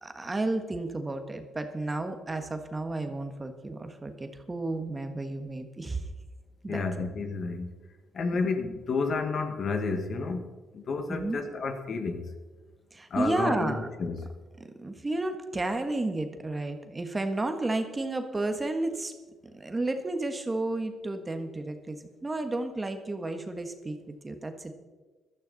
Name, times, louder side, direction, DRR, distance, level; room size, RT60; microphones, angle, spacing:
voice 1, 0.0-6.1 6.6-6.8 8.3-8.5 11.1-11.4 12.9-13.9 14.6-19.1 19.5-24.7, right 2 dB, 20° right, 1.4 m, -32 dB
voice 2, 6.7-7.7 8.1-10.5 10.7-12.3 13.1-14.3, left 4 dB, 55° left, 1.7 m, -31 dB
16.0 x 12.5 x 4.1 m
cardioid pair, 90°, 0 cm